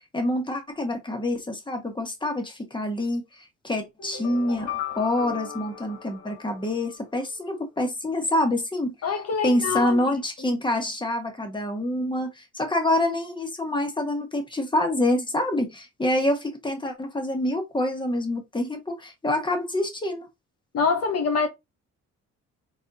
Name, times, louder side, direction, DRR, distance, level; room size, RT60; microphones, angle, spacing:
voice 1, 0.1-8.9 9.4-20.3, left 1 dB, 15° left, 1.5 m, -26 dB
sound 1, 4.0-7.1, left 9 dB, 80° left, 2.3 m, -36 dB
voice 2, 9.0-10.2 20.7-21.5, left 5 dB, 55° left, 0.9 m, -25 dB
4.1 x 4.0 x 2.8 m
cardioid pair, 90°, 30 cm